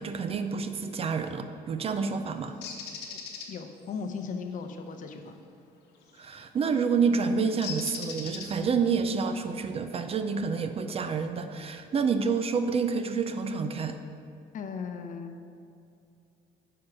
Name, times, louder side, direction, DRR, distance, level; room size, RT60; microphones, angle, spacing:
voice 1, 0.0-2.6 6.2-14.0, right 5 dB, 35° right, 8 dB, 0.5 m, -28 dB
Bird, 2.6-3.5 6.1-6.3 7.6-8.8, left 5 dB, 80° left, 1.0 m, -38 dB
voice 2, 3.5-5.4 14.5-15.5, left 5 dB, 50° left, 6 dB, 0.7 m, -37 dB
8.6 x 4.6 x 4.9 m, 2.5 s
cardioid pair, 110°, 17 cm